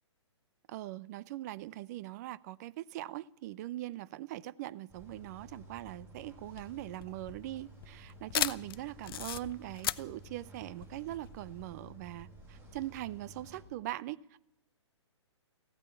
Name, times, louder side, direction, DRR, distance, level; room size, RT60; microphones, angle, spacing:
voice 1, 0.7-14.4, right 15 dB, 35° right, 0.5 m, -41 dB
sound 1, 4.9-13.6, right 1 dB, 15° right, 4.1 m, -53 dB
sound 2, 6.4-11.6, left 12 dB, 50° left, 0.5 m, -37 dB
15.0 x 9.0 x 9.8 m
hypercardioid pair, 130°, 15 cm